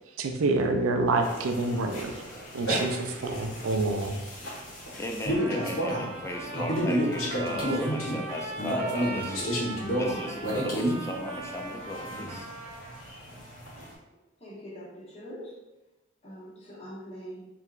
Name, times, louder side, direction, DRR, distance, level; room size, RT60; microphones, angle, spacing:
voice 1, 0.2-2.1 2.5-4.1, right 3 dB, 85° right, 0.4 m, -27 dB
sound 1, 1.2-13.9, equal, 75° left, 1.4 m, -32 dB
voice 2, 5.0-12.5, left 1 dB, 15° left, 0.4 m, -37 dB
Trumpet, 5.3-13.0, right 2 dB, 30° right, 0.8 m, -40 dB
voice 3, 14.4-15.5 16.2-17.4, equal, 30° left, 1.3 m, -43 dB
4.6 x 3.4 x 2.4 m
head